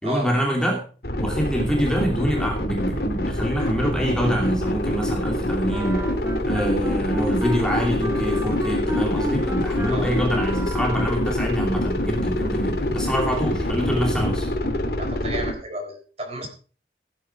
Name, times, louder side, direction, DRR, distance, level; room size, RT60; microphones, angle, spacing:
voice 1, 0.0-0.8 1.2-6.0 6.5-14.5, equal, 5° left, 0 dB, 2.8 m, -25 dB
sound 1, 1.0-15.5, left 1 dB, 55° left, 2.6 m, -25 dB
Thunder, 4.8-14.4, right 1 dB, 85° right, 3.3 m, -40 dB
Wind instrument woodwind instrument, 5.7-11.3, equal, 15° right, 1.7 m, -32 dB
voice 2, 15.0-16.5, right 1 dB, 35° right, 4 dB, 3.9 m, -32 dB
16.5 x 9.4 x 4.7 m, 0.37 s
head